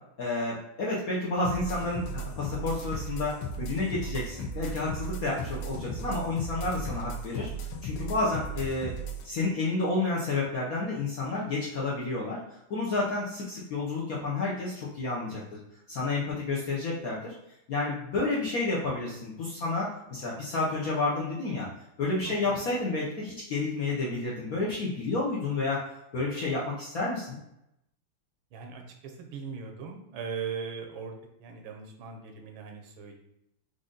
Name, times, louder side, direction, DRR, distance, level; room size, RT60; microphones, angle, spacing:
voice 1, 0.2-8.9 9.2-15.6 15.9-17.3 17.7-21.7 22.0-25.8 26.1-27.4, left 3 dB, 65° left, -5 dB, 0.9 m, -30 dB
sound 1, 1.4-9.2, right 1 dB, 80° left, 1.5 m, -36 dB
voice 2, 22.2-22.6 28.5-33.2, right 6 dB, 75° right, 3 dB, 1.4 m, -39 dB
5.0 x 2.6 x 3.8 m, 0.81 s
omnidirectional pair, 2.4 m